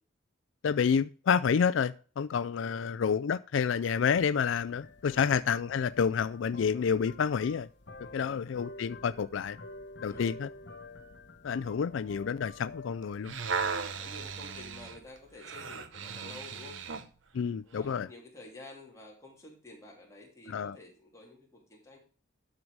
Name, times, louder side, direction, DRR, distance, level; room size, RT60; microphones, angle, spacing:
voice 1, 0.6-7.7 8.1-9.6 10.0-10.5 11.4-13.3 17.3-18.1 20.5-20.8, left 6 dB, 80° left, 0.4 m, -29 dB
voice 2, 2.6-3.0 5.0-5.4 8.0-8.4 10.0-10.3 14.0-16.8 17.6-22.0, left 2 dB, 15° left, 3.2 m, -50 dB
sound 1, 3.8-15.4, left 2 dB, 60° left, 1.1 m, -50 dB
sound 2, 13.0-17.1 17.8-17.9, right 5 dB, 80° right, 1.0 m, -36 dB
12.5 x 4.7 x 6.2 m
head